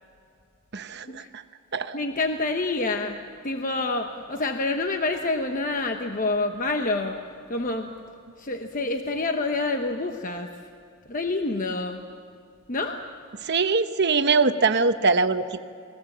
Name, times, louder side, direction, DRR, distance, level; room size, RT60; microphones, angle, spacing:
voice 1, 0.7-1.4 1.7-2.0 13.4-15.6, right 4 dB, 50° right, 9 dB, 1.0 m, -23 dB
voice 2, 1.9-7.2 7.5-7.9 8.4-10.6 11.1-12.0 12.7-13.0, left 2 dB, 35° left, 5 dB, 1.0 m, -27 dB
29.0 x 21.0 x 7.4 m, 2.5 s
head